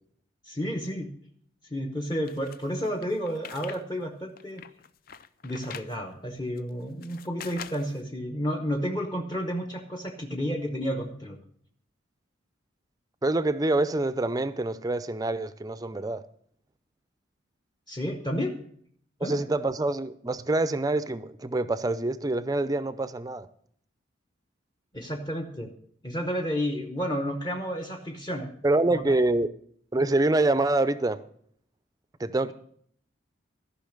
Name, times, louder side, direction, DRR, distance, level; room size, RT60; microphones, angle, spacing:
voice 1, 0.4-1.1 1.7-4.6 5.4-11.4 17.9-18.5 19.2-19.4 24.9-25.7 26.0-28.5 28.9-29.2, equal, 20° left, 3 dB, 0.9 m, -31 dB
sound 1, 2.3-3.8 4.2-5.9 6.6-8.0, left 8 dB, 45° left, 0.5 m, -44 dB
voice 2, 13.2-16.2 19.2-23.5 28.6-29.5 29.9-31.2 32.2-32.5, right 2 dB, 20° right, 14 dB, 0.4 m, -26 dB
14.0 x 5.7 x 6.5 m, 0.64 s
head